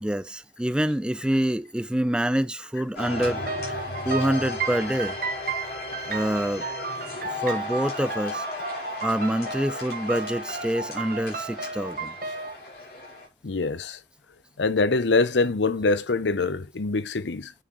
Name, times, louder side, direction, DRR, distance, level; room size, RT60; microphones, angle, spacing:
voice 1, 0.0-3.4 4.0-5.2 6.1-6.7 7.3-8.5 9.0-12.1, right 1 dB, 5° right, 0.3 m, -26 dB
sound 1, 3.0-13.3, left 2 dB, 60° left, 5.0 m, -35 dB
sound 2, 3.2-12.6, right 5 dB, 50° right, 1.1 m, -34 dB
voice 2, 13.4-14.0 14.6-17.5, left 3 dB, 85° left, 0.7 m, -24 dB
9.5 x 6.3 x 3.1 m
head